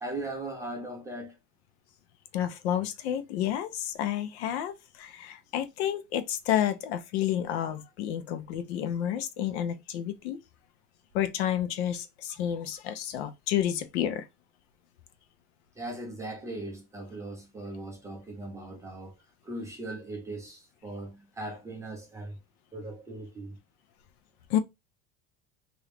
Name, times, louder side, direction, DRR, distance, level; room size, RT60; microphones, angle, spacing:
voice 1, 0.0-1.4 15.8-19.1 19.4-22.4 22.7-23.6, right 2 dB, 10° right, 0.4 m, -39 dB
voice 2, 2.3-10.4 11.1-14.3 24.5-24.6, left 10 dB, 75° left, 0.7 m, -30 dB
2.9 x 2.6 x 3.3 m
cardioid pair, 170°, 33 cm